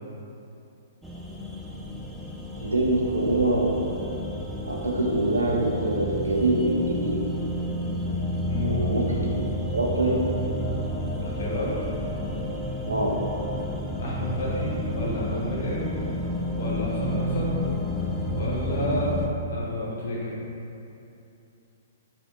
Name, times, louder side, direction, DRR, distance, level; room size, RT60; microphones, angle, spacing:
sound 1, 1.0-19.3, equal, ahead, 0.3 m, -30 dB
voice 1, 2.6-3.9 4.7-7.2 8.6-9.3 9.7-10.2 12.8-13.1, right 1 dB, 90° right, -2 dB, 0.5 m, -24 dB
voice 2, 11.2-11.7 14.0-15.9 16.6-17.5 18.3-19.1 19.5-20.3, left 1 dB, 65° left, -5 dB, 0.9 m, -30 dB
3.4 x 2.4 x 2.6 m, 2.7 s
figure-of-eight pair, 120°, 0 cm